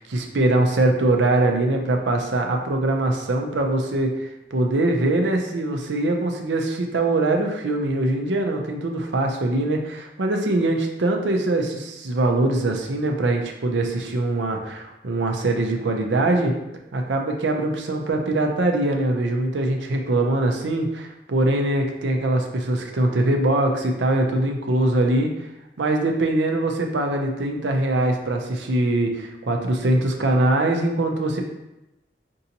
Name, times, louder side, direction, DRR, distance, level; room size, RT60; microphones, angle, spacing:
voice 1, 0.0-16.5 16.9-25.3 25.8-31.4, right 2 dB, 85° right, 2 dB, 0.6 m, -22 dB
5.4 x 2.6 x 2.8 m, 0.93 s
head